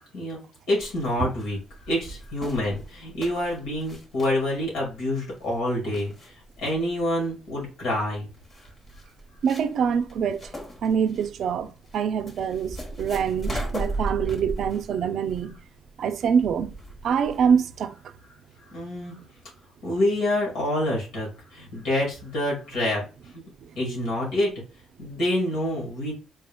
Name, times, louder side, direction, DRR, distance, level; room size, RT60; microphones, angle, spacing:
voice 1, 0.7-6.3 6.6-8.3 18.7-19.2 19.8-23.0 23.3-23.4 23.8-24.5 25.0-26.1, left 1 dB, 90° left, 1.9 m, -27 dB
sound 1, 0.8-17.6, right 1 dB, 30° left, 1.0 m, -37 dB
voice 2, 9.4-10.5 10.8-15.6 16.0-16.7 17.0-17.9, right 7 dB, 65° right, 0.4 m, -25 dB
4.3 x 3.5 x 2.2 m
cardioid pair, 125°, 0 cm